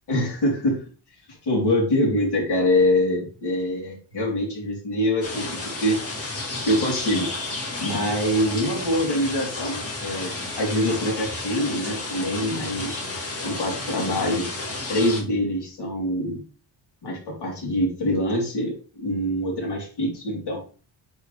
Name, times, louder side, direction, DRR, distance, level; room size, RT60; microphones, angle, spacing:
voice 1, 0.1-0.8 1.4-6.0 6.6-7.3 7.8-13.0 13.4-14.5 14.9-16.4 17.0-20.6, left 1 dB, 60° left, -2 dB, 3.8 m, -24 dB
sound 1, 5.2-15.2, left 2 dB, 30° left, 2.4 m, -32 dB
8.5 x 5.1 x 3.4 m, 0.37 s
wide cardioid pair, 165°, 45 cm